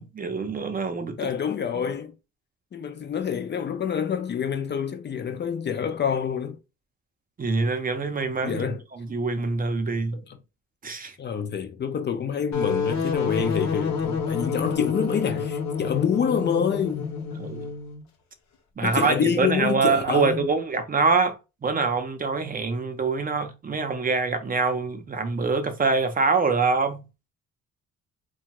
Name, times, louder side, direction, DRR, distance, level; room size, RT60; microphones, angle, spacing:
voice 1, 0.0-1.3 7.4-10.2 10.8-11.2 17.3-17.7 18.8-21.4 21.6-27.0, right 4 dB, 30° right, 0.6 m, -25 dB
voice 2, 1.2-2.2 2.7-6.6 8.4-8.8 10.1-10.4 11.2-17.1 18.8-20.5, left 7 dB, 35° left, 0.4 m, -27 dB
sound 1, 12.5-18.0, left 5 dB, 70° left, 0.9 m, -28 dB
2.9 x 2.3 x 2.9 m
cardioid pair, 90°, 30 cm